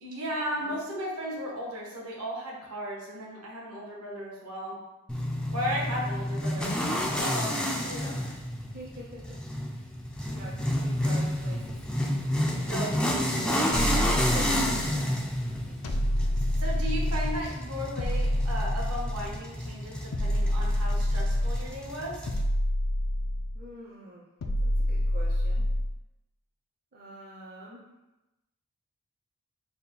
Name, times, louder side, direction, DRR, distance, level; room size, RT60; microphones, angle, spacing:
voice 1, 0.0-4.8 5.5-7.6 8.2-8.3 12.7-13.6 16.5-22.2, equal, 70° right, -3 dB, 1.0 m, -35 dB
sound 1, 5.1-22.4, equal, 5° left, 0.3 m, -30 dB
voice 2, 5.5-5.8 7.8-8.2 8.7-9.4 10.3-11.8 14.0-15.0 23.5-24.3 24.6-25.6 26.9-27.9, right 1 dB, 40° right, -5 dB, 0.6 m, -45 dB
sound 2, 13.7-15.0 15.8-17.5 18.0-19.4 20.1-21.7 22.3-23.7 24.4-26.0, left 1 dB, 80° left, 0.4 m, -27 dB
3.5 x 2.2 x 4.3 m, 1.0 s
head